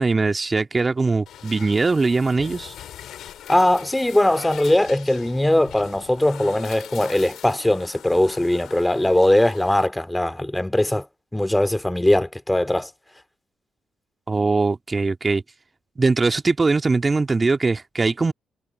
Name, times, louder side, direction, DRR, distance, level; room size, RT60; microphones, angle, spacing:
voice 1, 0.0-2.7 14.3-15.4 16.0-18.3, right 3 dB, 30° right, 2.2 m, -21 dB
sound 1, 1.3-9.9, left 11 dB, 65° left, 2.8 m, -41 dB
voice 2, 3.5-11.1 11.3-12.9, left 1 dB, 10° left, 3.0 m, -20 dB
hypercardioid pair, 40°, 0 cm